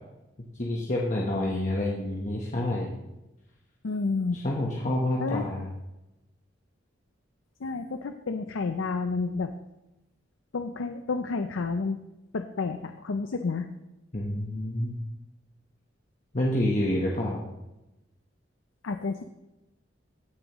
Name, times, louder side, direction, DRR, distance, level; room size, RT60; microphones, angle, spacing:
voice 1, 0.6-2.9 4.4-5.7 14.1-15.0 16.3-17.4, left 1 dB, 40° left, -3 dB, 1.1 m, -28 dB
voice 2, 3.8-4.4 5.2-5.4 7.6-9.5 10.5-12.0 12.3-13.7 18.8-19.2, left 4 dB, 85° left, 8 dB, 0.5 m, -30 dB
16.5 x 7.2 x 3.1 m, 0.95 s
head